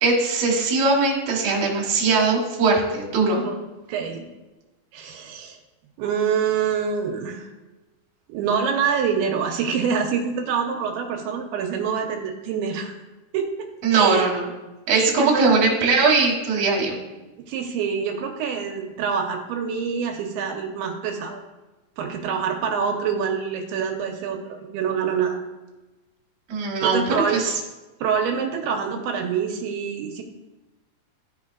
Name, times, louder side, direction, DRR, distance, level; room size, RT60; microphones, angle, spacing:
voice 1, 0.0-3.4 13.8-14.5 14.9-17.0 26.5-27.6, right 4 dB, 55° right, -2 dB, 2.1 m, -20 dB
voice 2, 3.9-4.3 4.9-5.6 6.0-7.5 8.3-13.0 13.3-14.3 14.9-15.5 17.5-21.4 22.0-25.4 26.9-27.4 28.0-30.2, right 6 dB, 85° right, 3 dB, 2.6 m, -26 dB
12.5 x 5.2 x 2.4 m, 1.1 s
omnidirectional pair, 4.4 m